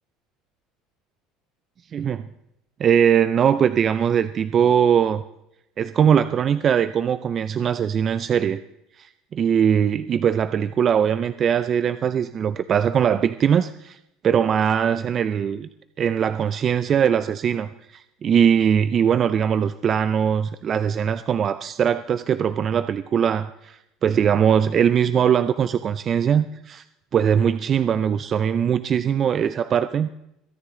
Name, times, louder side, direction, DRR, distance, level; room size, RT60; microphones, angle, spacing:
voice 1, 1.9-2.2 2.8-5.2 5.8-8.6 9.0-14.0 14.2-15.7 16.0-26.8 27.1-30.1, right 8 dB, 40° right, 13 dB, 0.5 m, -21 dB
23.0 x 9.6 x 3.8 m, 0.83 s
supercardioid pair, 100°, 0 cm